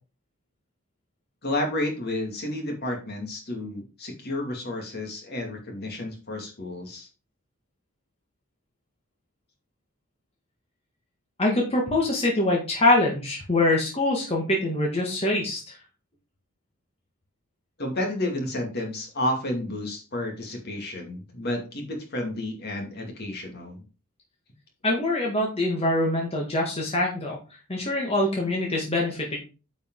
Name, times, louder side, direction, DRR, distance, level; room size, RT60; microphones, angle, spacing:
voice 1, 1.4-7.1 17.8-23.8, left 1 dB, 50° left, 2 dB, 2.4 m, -31 dB
voice 2, 11.4-15.8 24.8-27.4 27.7-29.4, left 2 dB, 30° left, -2 dB, 1.8 m, -24 dB
9.4 x 5.3 x 3.8 m, 0.33 s
head